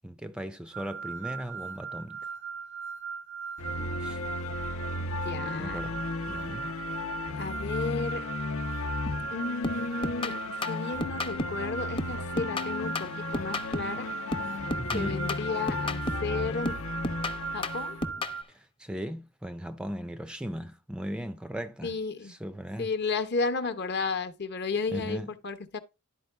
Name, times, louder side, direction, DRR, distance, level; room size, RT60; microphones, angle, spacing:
voice 1, 0.0-2.2 4.0-4.2 5.6-6.0 6.3-6.7 14.8-15.2 18.5-21.9 22.3-22.9 24.9-25.3, equal, 5° right, 0.4 m, -37 dB
sound 1, 0.7-18.4, right 6 dB, 55° right, 0.5 m, -39 dB
sound 2, 3.6-18.1, left 3 dB, 80° left, 0.8 m, -35 dB
voice 2, 5.2-5.8 7.4-8.3 9.3-14.1 14.9-16.8 17.5-18.0 21.8-22.3 22.8-25.8, left 4 dB, 50° left, 0.9 m, -33 dB
sound 3, 9.1-9.3 9.6-11.7 12.0-14.0 14.3-16.4 16.7-18.4, left 1 dB, 25° left, 0.7 m, -34 dB
11.5 x 4.5 x 3.3 m
head